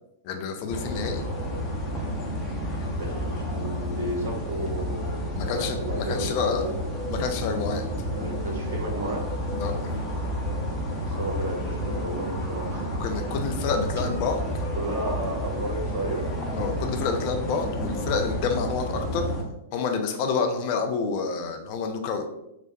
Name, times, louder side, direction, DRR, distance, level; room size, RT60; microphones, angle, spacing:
voice 1, 0.2-1.2 5.3-6.6 7.1-7.8 9.5-9.9 13.0-14.4 16.5-19.3 19.7-22.3, left 5 dB, 45° left, 5 dB, 0.4 m, -28 dB
sound 1, 0.7-19.4, equal, 15° left, 0.8 m, -30 dB
voice 2, 3.0-6.8 8.1-9.2 11.2-12.9 14.7-16.3, right 1 dB, 55° right, -1 dB, 1.1 m, -33 dB
3.3 x 2.1 x 4.1 m, 0.86 s
figure-of-eight pair, 100°, 0 cm